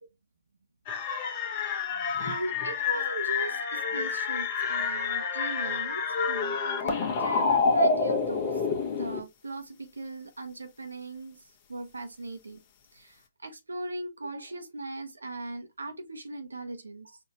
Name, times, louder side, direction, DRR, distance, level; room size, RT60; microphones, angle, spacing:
sound 1, 0.9-9.2, left 4 dB, 35° left, 1.0 m, -28 dB
voice 1, 2.2-6.6 6.8-8.5 8.9-11.4 11.7-12.6 12.9-17.2, right 2 dB, 90° right, 1.0 m, -39 dB
4.4 x 2.8 x 3.0 m
hypercardioid pair, 140°, 0 cm